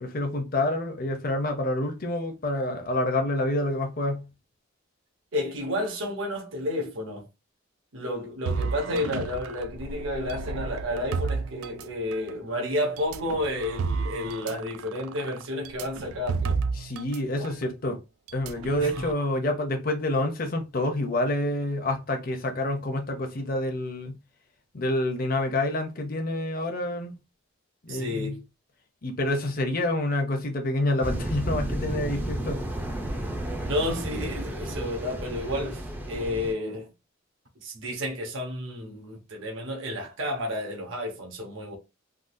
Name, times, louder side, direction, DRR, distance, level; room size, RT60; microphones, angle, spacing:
voice 1, 0.0-4.3 16.8-18.0 18.3-24.2 24.7-27.2 27.8-28.4 29.0-32.6, left 1 dB, 40° left, 0.6 m, -28 dB
voice 2, 5.3-7.3 7.9-16.6 17.4-17.5 18.8-19.0 27.9-28.4 33.5-35.8 36.1-36.9 37.6-41.8, left 1 dB, 65° right, 0.9 m, -31 dB
sound 1, 8.5-12.3 13.0-17.2 17.4-17.6 18.3-19.1, right 4 dB, 80° right, 0.3 m, -32 dB
sound 2, 31.0-36.5, right 1 dB, 10° right, 0.4 m, -32 dB
3.7 x 2.3 x 2.5 m
head